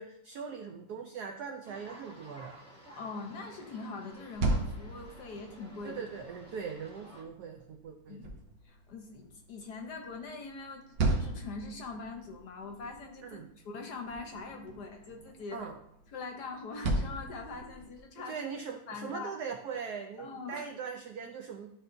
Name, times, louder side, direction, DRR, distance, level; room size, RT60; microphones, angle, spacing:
voice 1, 0.0-2.6 5.8-8.2 13.2-13.5 15.5-15.8 18.2-21.7, right 6 dB, 90° right, 5 dB, 0.8 m, -40 dB
sound 1, 1.6-7.2, equal, 5° left, 1.2 m, -53 dB
voice 2, 3.0-6.0 8.1-8.4 8.6-10.8 11.1-15.7 16.1-18.3 18.9-19.3 20.2-20.7, left 4 dB, 65° left, 4 dB, 1.1 m, -42 dB
sound 2, 4.1-18.1, right 2 dB, 75° right, 1.7 m, -38 dB
11.5 x 4.3 x 2.6 m, 0.79 s
omnidirectional pair, 2.3 m